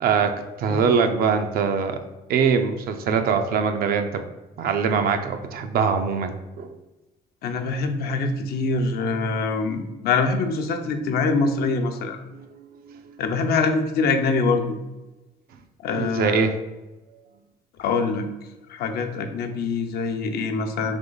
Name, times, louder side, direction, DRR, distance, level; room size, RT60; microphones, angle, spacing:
voice 1, 0.0-2.0 2.3-4.2 4.6-6.7 12.3-13.0 15.9-16.5, right 6 dB, 65° right, 7 dB, 0.5 m, -23 dB
voice 2, 7.4-12.2 13.2-14.8 15.8-16.5 17.8-18.3 18.7-21.0, left 4 dB, 65° left, 6 dB, 0.6 m, -24 dB
3.7 x 3.0 x 3.9 m, 1.1 s
cardioid pair, 110°, 17 cm